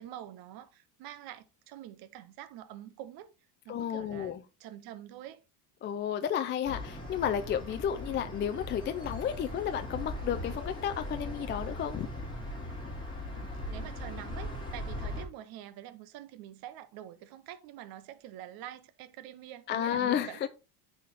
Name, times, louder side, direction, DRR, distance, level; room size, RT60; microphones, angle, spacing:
voice 1, 0.0-3.3 3.6-5.4 13.3-20.5, right 12 dB, 50° right, 0.8 m, -46 dB
voice 2, 3.7-4.4 5.8-12.1 19.7-20.5, left 9 dB, 25° left, 0.4 m, -32 dB
sound 1, 6.6-15.3, left 1 dB, 10° left, 3.2 m, -39 dB
9.3 x 4.2 x 3.4 m
cardioid pair, 140°, 46 cm